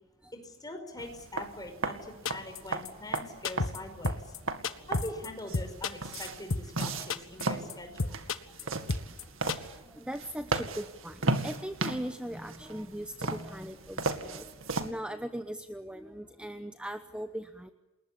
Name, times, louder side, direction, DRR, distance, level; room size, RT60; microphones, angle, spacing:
voice 1, 0.4-4.3 4.9-8.2, left 1 dB, 20° left, 6 dB, 5.3 m, -43 dB
sound 1, 1.0-14.9, right 3 dB, 70° right, 2.3 m, -36 dB
sound 2, 2.3-2.6 2.8-2.9 3.1-3.2 3.4-3.8 4.0-4.4 4.6-5.3 5.5-6.8 7.1-7.4 7.7-7.8 8.0-8.6 8.9-9.2 9.5-9.6, left 3 dB, 75° left, 1.5 m, -31 dB
voice 2, 8.4-9.2 9.5-17.7, equal, 5° right, 8 dB, 1.0 m, -40 dB
29.0 x 21.0 x 8.6 m, 1.1 s
head